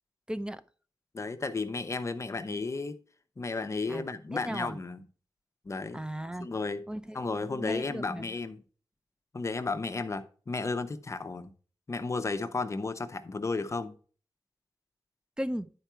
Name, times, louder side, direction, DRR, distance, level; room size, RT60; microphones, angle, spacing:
voice 1, 0.3-0.6 3.9-4.0 4.3-4.8 5.9-6.5 6.9-8.3 15.4-15.7, equal, 10° right, 0.5 m, -36 dB
voice 2, 1.1-3.0 3.4-5.0 5.7-6.0 6.4-6.8 7.1-8.6 9.3-11.5 11.9-13.9, left 3 dB, 40° left, 0.8 m, -33 dB
10.5 x 4.6 x 4.4 m
wide cardioid pair, 100°, 8 cm